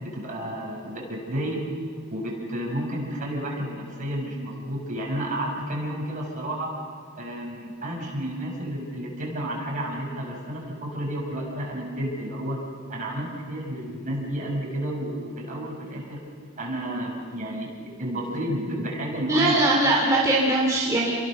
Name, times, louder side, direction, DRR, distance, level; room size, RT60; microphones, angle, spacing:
voice 1, 0.0-1.6 2.1-6.7 7.1-12.6 12.9-16.2 16.6-19.5, right 1 dB, 35° right, -2 dB, 7.1 m, -31 dB
voice 2, 19.3-21.1, right 2 dB, 15° right, -4 dB, 3.0 m, -21 dB
29.0 x 22.5 x 6.8 m, 2.1 s
head